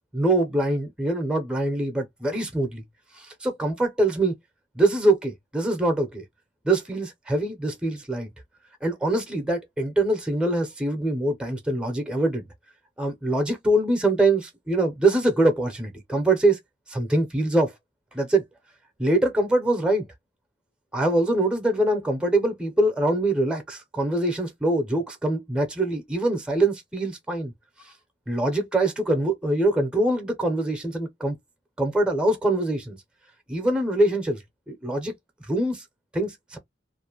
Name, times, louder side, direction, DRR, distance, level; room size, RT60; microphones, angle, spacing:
voice 1, 0.1-2.8 3.1-4.3 4.8-6.2 6.6-8.3 8.8-12.5 13.0-16.6 16.9-17.7 18.1-18.4 19.0-20.1 20.9-27.5 27.8-27.9 28.3-31.4 31.8-33.0 33.5-35.1 35.5-35.8 36.1-36.6, right 1 dB, 5° right, 0.5 m, -24 dB
2.4 x 2.1 x 2.8 m
head